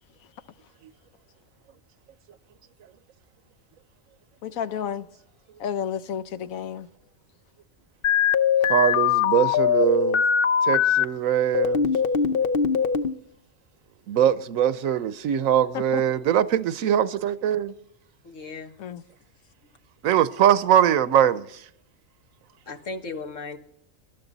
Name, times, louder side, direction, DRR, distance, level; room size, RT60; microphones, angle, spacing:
voice 1, 4.4-5.1 5.6-6.9 15.7-16.0 18.8-19.0, left 8 dB, 85° left, 1.2 m, -31 dB
sound 1, 8.0-11.0 11.5-13.1, left 7 dB, 50° left, 0.8 m, -21 dB
voice 2, 8.7-10.2 10.7-11.9 14.1-17.7 20.0-21.5, right 10 dB, 80° right, 1.1 m, -22 dB
voice 3, 18.2-18.7 22.7-23.6, left 3 dB, 70° left, 1.9 m, -36 dB
25.0 x 12.0 x 4.0 m
omnidirectional pair, 1.4 m